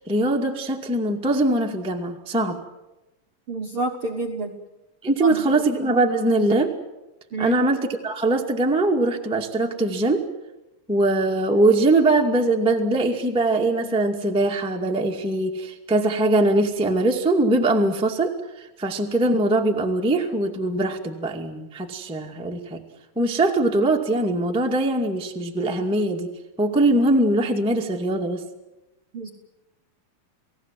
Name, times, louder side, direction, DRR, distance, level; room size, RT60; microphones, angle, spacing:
voice 1, 0.1-2.6 5.0-6.7 7.4-10.2 10.9-22.8 23.1-26.3 26.6-28.4, right 2 dB, 5° right, 1 dB, 0.9 m, -22 dB
voice 2, 3.5-4.5 5.2-5.4 7.3-7.6 29.1-29.3, right 3 dB, 55° right, 2 dB, 1.5 m, -28 dB
29.5 x 18.5 x 7.7 m, 0.99 s
omnidirectional pair, 4.6 m